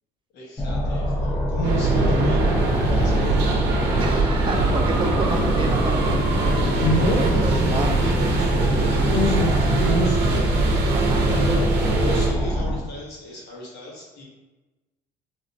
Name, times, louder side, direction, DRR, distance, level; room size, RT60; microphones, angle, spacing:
voice 1, 0.3-2.4 2.7-3.5 6.8-10.5 11.3-11.7 12.0-14.2, left 1 dB, 75° left, -4 dB, 1.0 m, -29 dB
sound 1, 0.6-12.8, equal, 20° left, 0.6 m, -25 dB
sound 2, 1.6-12.3, right 3 dB, 80° right, 0.6 m, -22 dB
voice 2, 4.0-6.3 7.7-8.1 10.9-11.3, right 3 dB, 30° right, 3 dB, 0.4 m, -29 dB
3.5 x 2.1 x 2.7 m, 1.2 s
cardioid pair, 110°, 17 cm